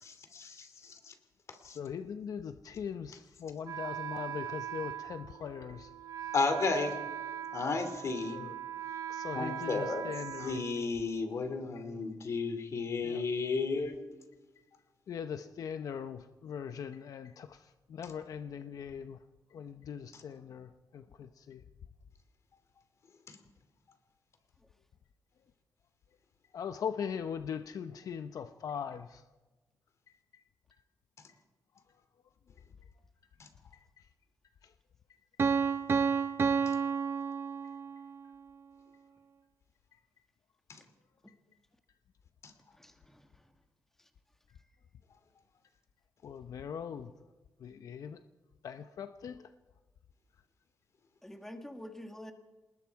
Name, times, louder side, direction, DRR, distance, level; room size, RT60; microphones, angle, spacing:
voice 1, 0.0-1.1 1.6-1.8 6.3-7.0 7.5-8.4 9.3-10.1 10.4-14.0 20.1-20.2, left 4 dB, 50° left, 8 dB, 2.7 m, -33 dB
voice 2, 1.6-5.9 8.3-8.5 9.1-10.6 13.0-13.2 15.1-17.6 17.9-19.2 19.5-21.6 26.5-29.2 46.2-47.1 47.6-48.2 48.6-49.4, left 7 dB, 65° left, 9 dB, 0.8 m, -40 dB
Wind instrument woodwind instrument, 3.6-11.4, right 10 dB, 65° right, 0.7 m, -41 dB
Piano, 35.4-38.2, right 5 dB, 40° right, 0.8 m, -30 dB
voice 3, 42.8-43.5 44.0-44.1 51.2-52.3, left 1 dB, 5° left, 5 dB, 1.7 m, -47 dB
27.0 x 20.5 x 4.7 m, 1.2 s
wide cardioid pair, 155°, 7 cm